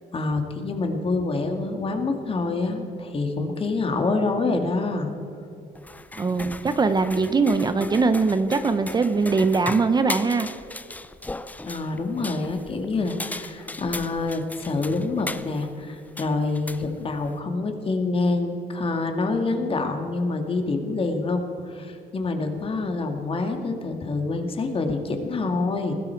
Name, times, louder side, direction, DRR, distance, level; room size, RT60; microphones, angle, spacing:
voice 1, 0.1-5.1 11.6-25.9, left 3 dB, 35° left, 5 dB, 2.0 m, -26 dB
sound 1, 5.7-17.4, left 2 dB, 10° left, 0.6 m, -38 dB
voice 2, 6.2-10.5, right 4 dB, 25° right, 10 dB, 0.8 m, -21 dB
21.0 x 15.5 x 4.6 m, 2.8 s
cardioid pair, 110°, 17 cm